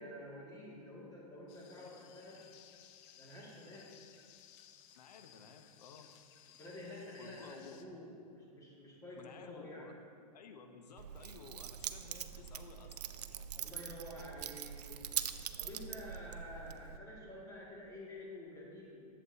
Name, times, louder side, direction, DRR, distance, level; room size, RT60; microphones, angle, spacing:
voice 1, 0.0-2.5 3.2-3.9 6.6-9.9 13.5-15.0 15.6-19.1, left 1 dB, 15° left, -5 dB, 2.2 m, -49 dB
sound 1, 1.5-7.8, left 10 dB, 40° left, 0.5 m, -60 dB
voice 2, 4.9-6.1 7.2-7.8 9.1-9.9 10.3-13.2, left 6 dB, 70° left, 6 dB, 0.9 m, -54 dB
Keys jangling, 11.0-17.0, right 9 dB, 75° right, 0.4 m, -43 dB
11.0 x 7.5 x 2.8 m, 2.3 s
hypercardioid pair, 110°, 21 cm